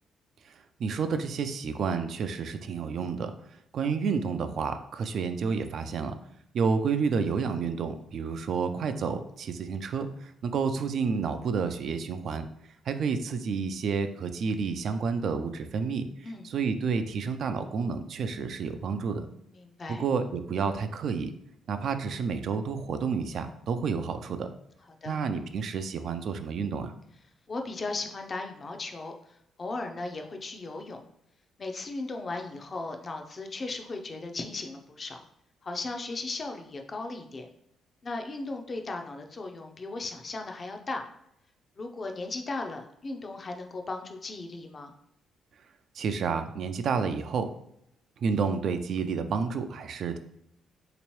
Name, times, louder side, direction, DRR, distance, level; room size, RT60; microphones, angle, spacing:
voice 1, 0.8-3.3 3.7-6.2 6.5-12.5 12.9-19.3 19.9-21.3 21.7-24.5 25.1-26.9 46.0-47.5 48.2-50.2, right 5 dB, 60° right, 9 dB, 0.3 m, -30 dB
voice 2, 19.5-20.0 25.0-25.2 27.5-31.0 31.6-35.2 35.6-37.5 38.0-41.0 41.8-44.9, left 3 dB, 40° left, 4 dB, 0.5 m, -37 dB
3.4 x 2.9 x 3.1 m, 0.78 s
cardioid pair, 90°, 0 cm